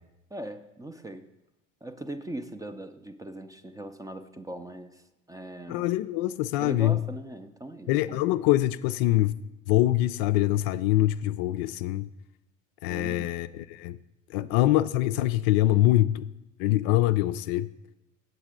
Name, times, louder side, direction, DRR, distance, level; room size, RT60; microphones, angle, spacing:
voice 1, 0.3-1.3 1.8-5.9 6.6-8.2 12.9-13.3 14.4-14.5, right 1 dB, 10° right, 0.5 m, -40 dB
voice 2, 5.7-7.0 7.9-9.3 9.7-12.1 12.8-14.0 14.3-16.3 16.6-17.7, left 15 dB, 50° left, 0.4 m, -24 dB
8.0 x 7.9 x 5.0 m
figure-of-eight pair, 70°, 41 cm